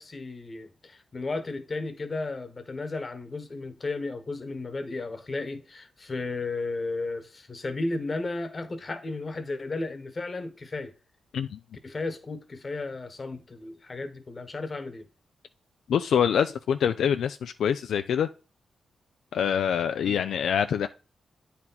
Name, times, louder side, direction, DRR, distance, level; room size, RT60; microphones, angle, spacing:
voice 1, 0.0-10.9 11.8-15.1 20.0-20.2, left 3 dB, 40° left, 1.2 m, -34 dB
voice 2, 15.9-18.3 19.3-20.9, left 8 dB, 85° left, 0.3 m, -25 dB
8.9 x 4.2 x 4.2 m
cardioid pair, 75°, 0 cm